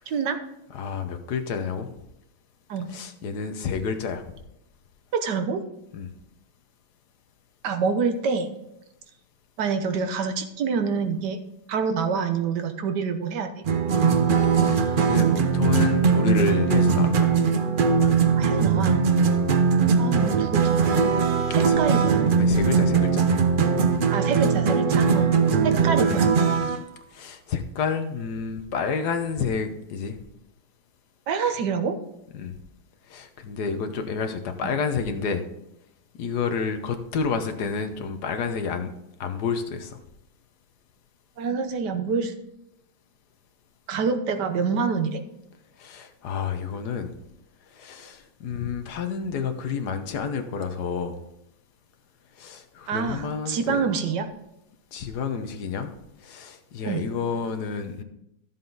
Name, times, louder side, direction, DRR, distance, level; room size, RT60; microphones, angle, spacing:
voice 1, 0.1-0.4 2.7-2.9 5.1-5.6 7.6-8.5 9.6-11.4 11.7-13.6 18.4-19.0 20.0-21.2 21.5-22.2 24.1-25.3 25.6-26.3 31.3-32.0 34.6-34.7 41.4-42.3 43.9-45.2 52.9-54.3 56.8-57.0, right 5 dB, 85° right, 7 dB, 1.6 m, -26 dB
voice 2, 0.7-1.9 2.9-4.2 5.9-6.1 14.5-17.3 19.2-19.4 21.5-21.8 22.4-23.3 25.1-25.3 27.1-30.2 32.3-32.6 33.1-35.4 36.2-38.9 39.2-40.0 45.8-47.1 47.7-51.2 52.4-53.9 54.9-55.9 56.2-58.0, left 5 dB, 75° left, 7 dB, 1.5 m, -29 dB
sound 1, 13.6-26.8, right 5 dB, 60° right, 0.5 m, -20 dB
13.0 x 7.4 x 3.9 m, 0.85 s
omnidirectional pair, 1.8 m